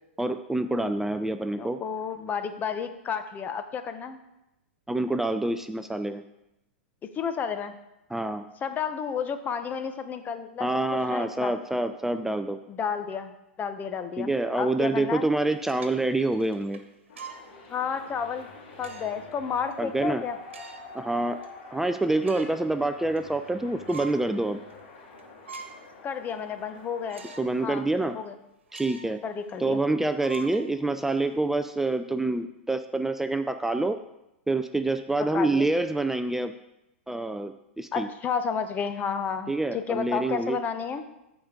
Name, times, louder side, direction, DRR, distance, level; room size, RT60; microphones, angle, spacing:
voice 1, 0.2-1.8 4.9-6.2 8.1-8.4 10.6-12.6 14.2-16.8 19.8-20.2 20.9-21.4 21.7-24.6 27.4-28.2 28.7-29.2 29.6-34.0 34.5-36.5 37.1-38.1 39.5-40.6, right 2 dB, 5° right, 9 dB, 0.4 m, -27 dB
voice 2, 1.3-4.2 7.1-7.7 8.6-11.5 12.7-13.3 13.6-14.3 14.5-15.3 17.7-18.5 18.8-20.4 26.0-27.2 27.6-27.9 28.1-28.3 29.2-29.8 35.3-35.7 37.9-41.0, left 6 dB, 25° left, 9 dB, 0.8 m, -31 dB
sound 1, 15.4-17.5 18.0-18.1 18.8-19.3 19.7-19.8 20.4-21.0 21.4-21.5 21.9-22.6 23.0-23.5 23.9-24.2 24.7-24.8 25.2-25.9 26.3-26.4 27.1-27.5 27.9-28.0 28.7-29.2 29.5-29.6 30.2-31.2, right 4 dB, 85° right, 1.2 m, -44 dB
sound 2, 17.1-27.7, left 3 dB, 80° left, 2.4 m, -47 dB
14.0 x 5.1 x 3.7 m, 0.90 s
hypercardioid pair, 110°, 6 cm